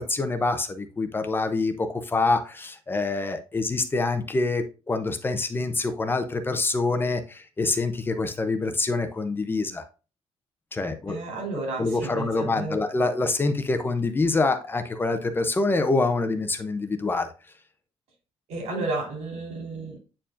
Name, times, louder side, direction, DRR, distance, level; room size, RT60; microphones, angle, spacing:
voice 1, 0.0-9.8 10.7-11.2 11.8-17.3, left 3 dB, 20° left, 8 dB, 0.6 m, -26 dB
voice 2, 11.1-12.8 18.5-20.1, right 3 dB, 85° right, 1 dB, 3.7 m, -32 dB
8.7 x 4.6 x 2.5 m, 0.32 s
cardioid pair, 165°, 11 cm